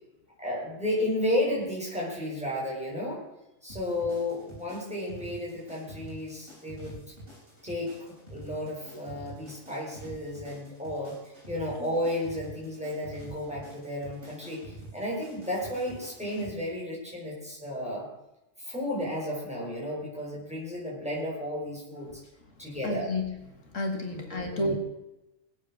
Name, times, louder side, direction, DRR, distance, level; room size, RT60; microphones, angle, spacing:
voice 1, 0.4-3.2 3.6-7.1 7.6-18.1 18.6-22.2 22.6-23.1 24.1-24.7, left 1 dB, 5° right, -4 dB, 5.8 m, -33 dB
sound 1, 3.7-16.5, right 1 dB, 45° right, 7.4 m, -47 dB
voice 2, 22.8-24.7, left 1 dB, 80° left, 3 dB, 2.4 m, -31 dB
19.0 x 8.9 x 6.4 m, 0.95 s
omnidirectional pair, 1.3 m